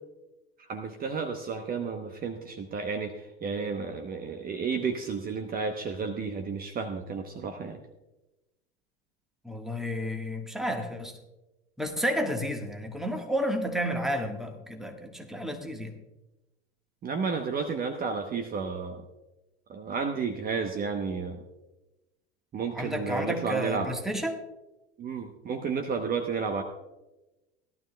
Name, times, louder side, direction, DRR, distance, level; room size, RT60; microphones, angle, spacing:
voice 1, 0.7-7.8 17.0-19.0 19.7-21.4 22.5-23.9 25.0-26.6, right 5 dB, 30° right, 6 dB, 1.0 m, -32 dB
voice 2, 9.4-11.1 11.8-15.9 22.7-24.4, equal, ahead, 3 dB, 1.5 m, -31 dB
17.0 x 12.0 x 2.3 m, 1.0 s
figure-of-eight pair, 80°, 31 cm